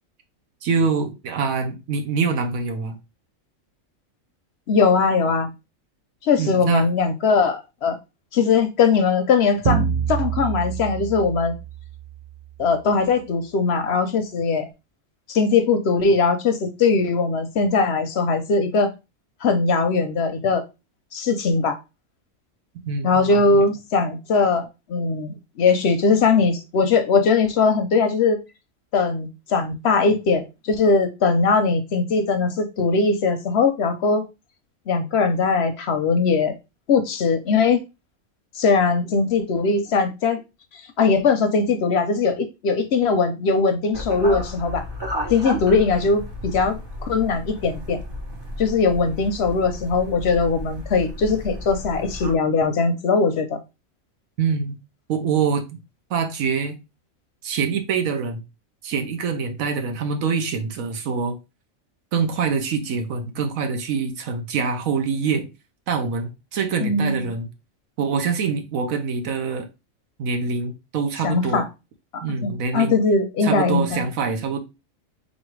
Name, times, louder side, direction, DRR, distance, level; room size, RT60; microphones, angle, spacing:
voice 1, 0.6-3.0 6.4-6.9 22.8-23.7 54.4-54.8 55.1-55.8 56.1-56.8 57.4-58.4 58.8-61.4 62.1-65.4 65.9-67.5 68.0-69.7 70.2-71.7 72.2-73.0 73.4-74.6, right 5 dB, 85° right, 1.2 m, -25 dB
voice 2, 4.7-5.5 6.2-8.0 8.3-11.5 12.6-14.7 15.3-18.9 19.4-20.6 21.1-21.8 23.0-28.4 28.9-34.3 34.9-36.5 36.9-37.8 38.5-40.4 40.7-44.8 45.3-48.0 48.6-53.6 66.8-67.3 71.2-71.7 72.1-74.0, left 4 dB, 65° left, 0.7 m, -20 dB
sound 1, 9.7-12.4, right 8 dB, 60° right, 0.5 m, -26 dB
sound 2, 43.9-52.3, left 1 dB, 25° right, 0.7 m, -33 dB
4.0 x 3.2 x 3.1 m
omnidirectional pair, 1.4 m